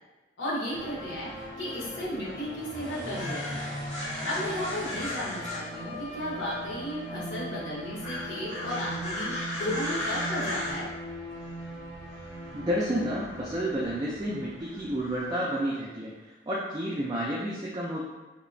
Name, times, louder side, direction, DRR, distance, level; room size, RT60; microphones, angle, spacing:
voice 1, 0.4-3.6 4.2-10.9, left 1 dB, 75° left, -5 dB, 0.7 m, -34 dB
sound 1, 0.7-15.3, equal, 35° left, 0.7 m, -36 dB
voice 2, 12.5-18.0, equal, 20° right, -5 dB, 0.3 m, -30 dB
2.8 x 2.0 x 2.5 m, 1.2 s
head